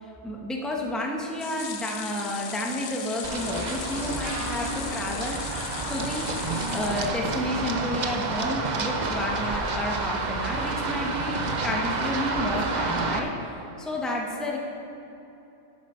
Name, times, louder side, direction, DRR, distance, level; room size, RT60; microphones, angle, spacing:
voice 1, 0.0-6.4 6.7-14.6, left 1 dB, ahead, -1 dB, 1.0 m, -31 dB
sound 1, 1.4-7.7 8.1-8.2 8.5-8.6, left 8 dB, 60° left, 0.8 m, -38 dB
Run, 3.2-13.2, right 3 dB, 40° right, 0.8 m, -29 dB
sound 2, 3.6-11.6, right 1 dB, 75° right, 2.3 m, -42 dB
10.5 x 9.3 x 5.6 m, 2.9 s
omnidirectional pair, 1.2 m